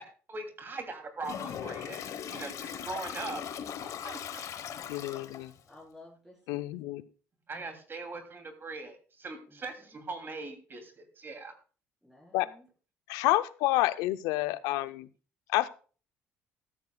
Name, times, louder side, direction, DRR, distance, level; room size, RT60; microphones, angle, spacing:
voice 1, 0.3-2.0 2.3-3.4 3.8-4.4 7.5-11.5, right 3 dB, 35° right, 6 dB, 2.8 m, -41 dB
Toilet flush, 1.2-5.6, left 8 dB, 60° left, 1.2 m, -39 dB
voice 2, 2.6-3.2 5.7-6.7 9.5-10.0 12.0-12.7, left 2 dB, 5° right, -2 dB, 4.2 m, -55 dB
voice 3, 4.9-5.5 6.5-7.0 12.3-12.5 13.1-15.1 15.5-15.7, left 17 dB, 80° left, 14 dB, 0.6 m, -29 dB
13.5 x 13.5 x 2.3 m, 0.38 s
supercardioid pair, 70°, 6 cm